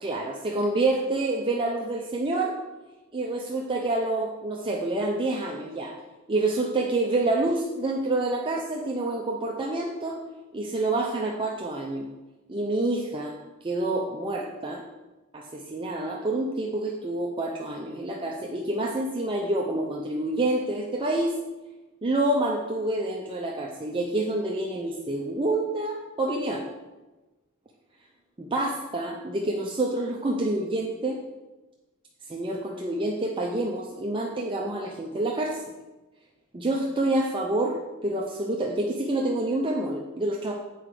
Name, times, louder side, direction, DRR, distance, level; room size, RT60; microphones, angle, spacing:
voice 1, 0.0-2.6 3.1-6.0 6.3-10.2 10.5-12.1 12.5-13.3 13.6-14.8 15.3-21.3 22.0-26.6 28.4-31.2 32.3-35.6 36.5-40.5, right 2 dB, 25° right, -1 dB, 0.6 m, -27 dB
7.7 x 4.9 x 4.9 m, 1.1 s
head